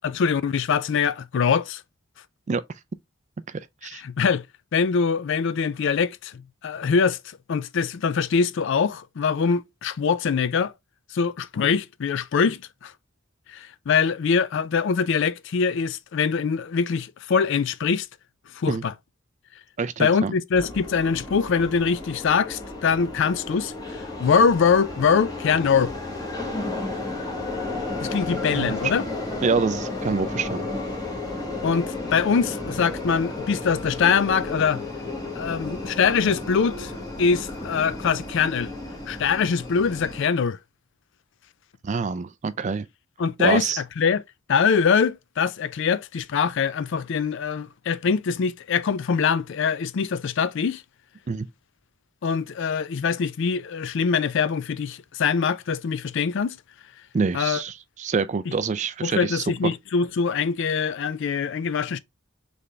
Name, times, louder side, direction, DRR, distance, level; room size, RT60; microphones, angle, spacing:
voice 1, 0.0-1.8 3.9-4.4 4.7-7.2 7.5-10.7 11.1-12.9 13.5-18.1 18.6-18.9 20.0-25.9 28.0-29.1 31.6-34.8 35.4-36.9 37.2-38.7 39.1-40.6 43.2-43.7 44.0-44.2 44.5-50.8 52.2-56.6 57.3-57.6 59.0-62.0, left 6 dB, 60° left, 0.4 m, -23 dB
voice 2, 3.5-4.0 18.7-18.8 19.8-20.3 28.5-28.7 29.4-30.7 41.8-42.9 43.4-43.8 51.3-51.5 57.1-59.4, right 5 dB, 35° right, 0.3 m, -26 dB
sound 1, 20.5-40.3, left 2 dB, 20° left, 1.2 m, -33 dB
4.1 x 3.4 x 3.1 m
head